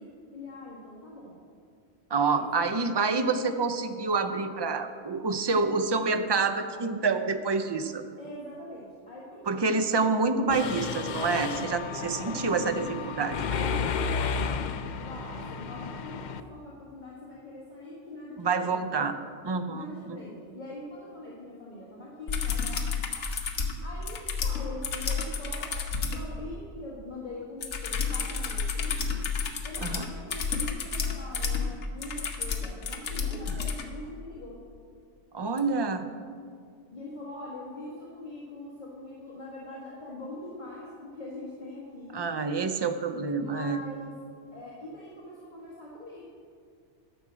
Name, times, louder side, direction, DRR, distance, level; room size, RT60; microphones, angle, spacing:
voice 1, 0.0-1.4 2.2-2.8 8.2-9.7 11.6-13.0 13.5-18.8 19.7-22.8 23.8-25.8 26.1-29.2 29.6-34.6 36.9-42.2 43.3-44.1 44.5-46.2, left 2 dB, 40° left, -7 dB, 1.7 m, -43 dB
voice 2, 2.1-8.0 9.5-12.8 13.2-13.4 18.4-19.1 19.4-19.8 29.8-30.0 35.3-36.1 42.1-43.8, right 4 dB, 35° right, 8 dB, 0.4 m, -27 dB
Mechanisms, 10.5-16.4, left 5 dB, 60° left, 0.5 m, -32 dB
sound 1, 22.3-26.2 27.6-33.8 35.6-35.7, left 5 dB, 75° left, 1.3 m, -31 dB
11.5 x 6.1 x 7.4 m, 2.2 s
omnidirectional pair, 1.2 m